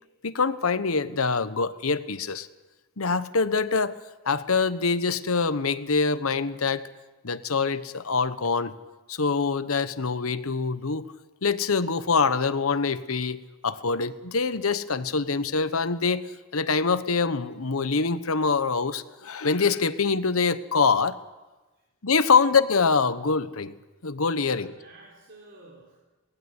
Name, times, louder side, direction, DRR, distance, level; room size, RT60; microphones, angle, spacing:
voice 1, 0.2-2.5 3.0-3.9 4.2-6.8 7.2-8.7 9.1-11.1 11.4-16.2 16.5-21.2 22.0-23.7 24.0-24.7, left 4 dB, 80° left, 12 dB, 1.1 m, -24 dB
voice 2, 24.4-26.0, right 2 dB, 60° right, -3 dB, 4.4 m, -51 dB
23.0 x 19.0 x 8.1 m, 1.2 s
head